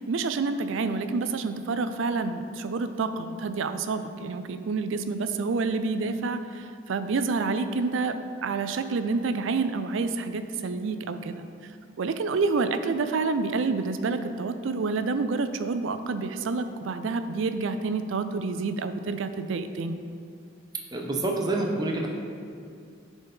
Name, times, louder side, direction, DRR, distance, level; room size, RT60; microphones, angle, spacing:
voice 1, 0.0-11.5 12.0-20.0, right 4 dB, 70° right, 9 dB, 0.4 m, -28 dB
voice 2, 20.9-22.1, right 2 dB, 20° right, -1 dB, 0.6 m, -27 dB
10.5 x 4.1 x 3.6 m, 2.4 s
head